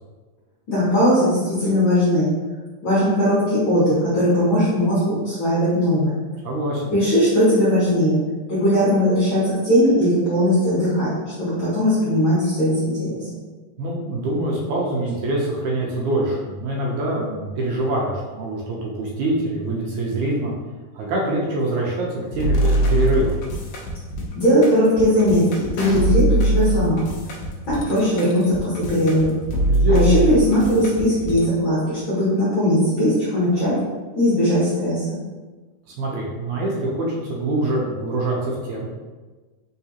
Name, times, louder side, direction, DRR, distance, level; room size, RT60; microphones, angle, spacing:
voice 1, 0.7-2.3 2.8-6.2 6.9-8.2 8.5-13.3 24.3-27.0 27.7-29.4 29.9-33.7 34.1-35.2, equal, 55° left, -10 dB, 1.5 m, -19 dB
voice 2, 6.4-6.9 13.8-20.5 20.9-23.3 29.7-30.2 36.0-38.9, right 1 dB, 75° right, -4 dB, 2.0 m, -24 dB
sound 1, 22.3-31.4, right 1 dB, 75° left, 1.5 m, -22 dB
4.7 x 3.9 x 2.8 m, 1.3 s
omnidirectional pair, 3.8 m